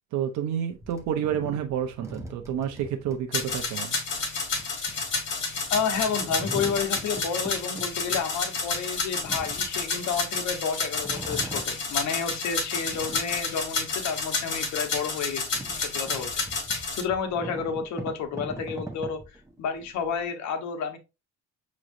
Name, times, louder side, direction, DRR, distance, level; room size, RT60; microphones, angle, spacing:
voice 1, 0.1-4.0, right 9 dB, 70° right, 0.8 m, -29 dB
sound 1, 0.7-10.5 10.9-12.3 12.7-14.1 14.6-14.7 15.1-20.2, right 1 dB, 10° right, 0.9 m, -42 dB
sound 2, 3.3-17.0, left 4 dB, 40° left, 1.6 m, -30 dB
voice 2, 5.7-15.4 15.8-16.3 17.0-19.2 19.6-21.0, left 6 dB, 70° left, 1.1 m, -30 dB
6.0 x 3.1 x 2.6 m
cardioid pair, 135°, 29 cm